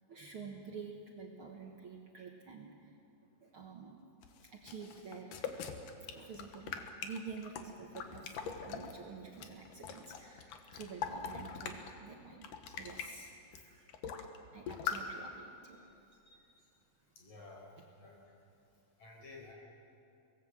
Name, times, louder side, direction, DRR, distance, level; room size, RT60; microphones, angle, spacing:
voice 1, 0.1-2.9 3.4-4.0 4.5-5.5 6.0-13.9 14.5-15.9, right 5 dB, 50° right, 0 dB, 1.9 m, -49 dB
sound 1, 4.2-8.9 9.3-11.9 12.3-13.1 13.5-13.6 13.9-14.4 14.7-15.0, left 7 dB, 85° left, 2.9 m, -42 dB
voice 2, 16.2-16.8 17.1-18.3 19.0-19.5, left 3 dB, 50° left, -1 dB, 5.8 m, -54 dB
24.0 x 19.0 x 7.8 m, 2.7 s
omnidirectional pair, 3.7 m